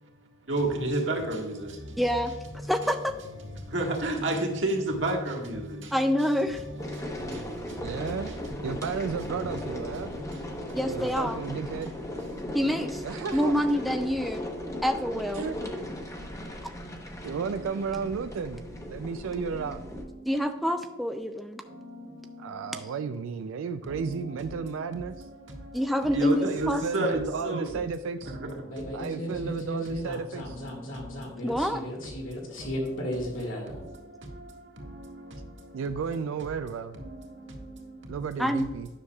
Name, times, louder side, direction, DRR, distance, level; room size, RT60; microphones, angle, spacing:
voice 1, 0.4-2.0 2.6-2.7 3.4-6.3 6.6-8.9 9.9-10.8 12.3-12.5 17.3-17.7 19.5-20.7 21.6-22.8 23.8-27.7 28.2-29.5 30.4-31.5 32.2-35.8 36.9-38.3, right 1 dB, 65° right, 1.7 m, -34 dB
voice 2, 2.0-2.3 2.6-3.1 5.9-6.6 10.8-11.4 12.5-13.0 13.3-14.4 14.8-15.5 20.3-21.6 25.7-27.1 31.4-31.8 38.4-38.7, equal, ahead, 0.3 m, -27 dB
sound 1, 6.8-20.0, left 1 dB, 15° left, 0.9 m, -37 dB
voice 3, 7.8-8.4 8.6-10.1 10.9-11.9 13.0-13.7 15.3-15.9 17.2-19.8 22.4-25.3 26.4-28.4 28.9-30.6 35.7-37.0 38.1-38.9, right 5 dB, 85° right, 0.3 m, -33 dB
sound 2, 28.7-33.8, left 1 dB, 80° left, 2.0 m, -35 dB
9.8 x 6.4 x 2.3 m
head